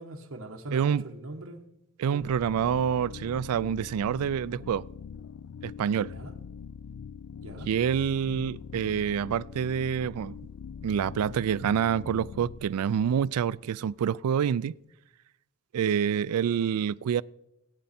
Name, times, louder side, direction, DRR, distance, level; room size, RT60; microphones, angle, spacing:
voice 1, 0.0-1.6 2.1-2.3 6.1-6.4 7.4-7.7, right 2 dB, 70° right, 1.2 m, -40 dB
voice 2, 0.7-1.0 2.0-4.9 5.6-6.1 7.6-10.4 10.8-14.7 15.7-17.2, right 8 dB, 90° right, 0.3 m, -27 dB
sound 1, 2.2-14.0, left 6 dB, 75° left, 0.3 m, -43 dB
17.5 x 8.9 x 4.2 m
head